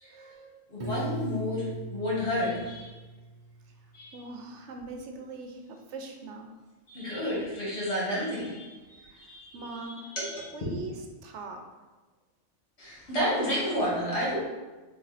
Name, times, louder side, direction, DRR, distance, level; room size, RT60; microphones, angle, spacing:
voice 1, 0.1-0.6 4.1-6.5 9.1-9.3 9.5-10.1 10.5-11.6, right 3 dB, 75° right, 3 dB, 0.9 m, -42 dB
voice 2, 0.7-1.7 1.9-2.9 3.9-4.2 6.9-9.6 10.1-10.5 12.8-14.4, equal, 60° left, -7 dB, 1.9 m, -31 dB
Piano, 0.8-3.7, right 1 dB, 50° right, 0.6 m, -38 dB
4.1 x 3.0 x 4.0 m, 1.2 s
omnidirectional pair, 1.2 m